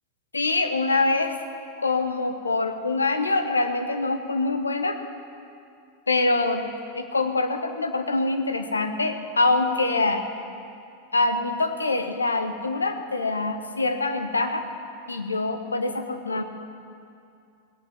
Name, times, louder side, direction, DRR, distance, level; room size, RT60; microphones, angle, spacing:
voice 1, 0.3-1.4 1.8-5.0 6.1-6.7 6.9-10.2 11.1-14.6 15.1-16.4, left 3 dB, 75° left, 7 dB, 1.0 m, -24 dB
18.0 x 9.0 x 7.3 m, 2.5 s
figure-of-eight pair, 90°, 0 cm